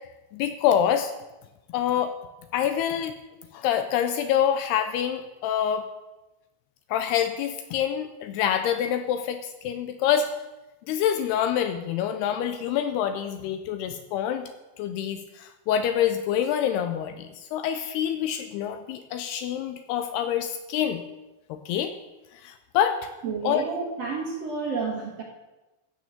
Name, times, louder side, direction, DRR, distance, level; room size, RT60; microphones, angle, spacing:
voice 1, 0.3-1.1 1.7-2.1 2.5-3.1 3.5-5.9 6.9-10.3 10.9-14.5 14.8-21.0 21.5-21.9 22.3-23.1 23.4-23.6, left 9 dB, 85° left, 8 dB, 2.5 m, -26 dB
voice 2, 23.2-25.2, right 4 dB, 50° right, -1 dB, 2.2 m, -30 dB
16.0 x 6.2 x 7.2 m, 1.1 s
omnidirectional pair, 5.1 m